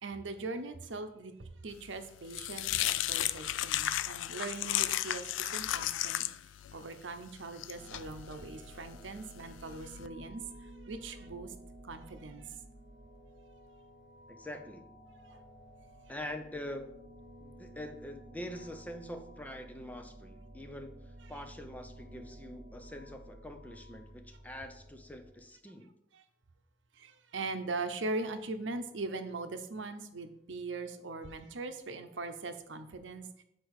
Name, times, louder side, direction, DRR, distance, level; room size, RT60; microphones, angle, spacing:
voice 1, 0.0-5.2 5.5-6.2 6.7-10.4 10.9-11.5 11.8-12.5 15.3-15.4 26.1-26.2 27.0-33.4, right 3 dB, 85° right, 8 dB, 0.7 m, -40 dB
sound 1, 1.8-10.1, left 13 dB, 85° left, 0.3 m, -35 dB
sound 2, 7.7-25.3, right 1 dB, 25° right, 2.0 m, -53 dB
voice 2, 14.3-14.9 16.1-17.0 17.4-25.9, left 1 dB, 10° left, 6 dB, 0.6 m, -44 dB
8.3 x 4.5 x 4.8 m, 0.80 s
head